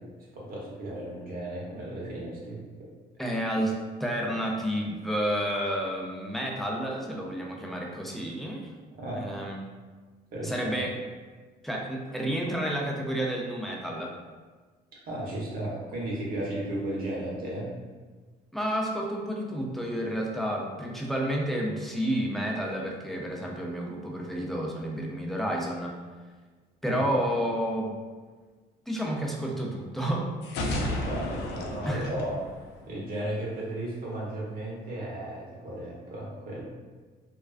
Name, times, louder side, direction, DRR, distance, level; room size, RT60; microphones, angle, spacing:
voice 1, 0.0-2.9 8.9-9.3 10.3-10.7 15.0-17.7 26.8-27.1 30.8-32.4 32.9-36.6, right 1 dB, 60° right, -5 dB, 0.9 m, -35 dB
voice 2, 3.2-8.7 9.1-9.6 10.4-11.0 11.6-14.1 18.5-25.9 26.8-27.9 28.9-30.3 31.9-32.1, equal, ahead, -2 dB, 0.4 m, -30 dB
sound 1, 30.4-33.3, left 1 dB, 85° left, 0.4 m, -33 dB
2.3 x 2.3 x 2.3 m, 1.4 s
cardioid pair, 100°, 18 cm